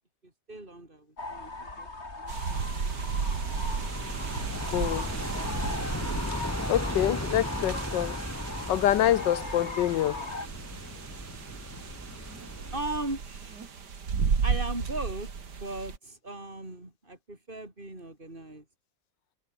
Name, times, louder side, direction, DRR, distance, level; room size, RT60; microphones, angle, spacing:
voice 1, 0.2-1.9 2.2-2.3 12.7-13.7 14.4-18.7, right 2 dB, 25° right, 6.2 m, -38 dB
sound 1, 1.2-10.5, left 2 dB, 35° left, 3.9 m, -39 dB
sound 2, 2.3-16.0, right 6 dB, 65° right, 2.7 m, -34 dB
sound 3, 2.5-12.8, equal, 10° left, 6.7 m, -37 dB
voice 2, 4.7-5.0 6.7-8.1 8.7-10.2, left 12 dB, 75° left, 1.5 m, -26 dB
omnidirectional pair, 1.9 m